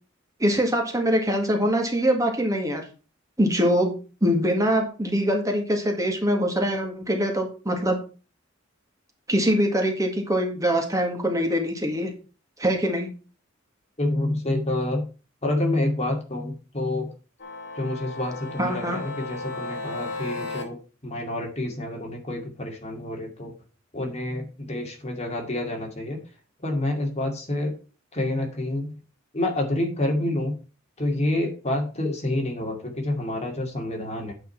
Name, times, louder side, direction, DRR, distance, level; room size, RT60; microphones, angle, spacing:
voice 1, 0.4-2.8 3.4-3.9 4.2-8.0 9.3-12.1 12.6-13.1 18.6-19.0, equal, 15° right, 3 dB, 1.7 m, -23 dB
voice 2, 14.0-15.1 15.4-17.1 17.8-20.8 21.0-23.5 23.9-26.2 26.6-27.8 28.1-28.9 29.3-30.6 31.0-34.3, left 1 dB, 35° left, 1 dB, 2.4 m, -28 dB
sound 1, 17.4-20.6, left 3 dB, 55° left, 2.5 m, -35 dB
9.0 x 5.3 x 5.7 m, 0.35 s
head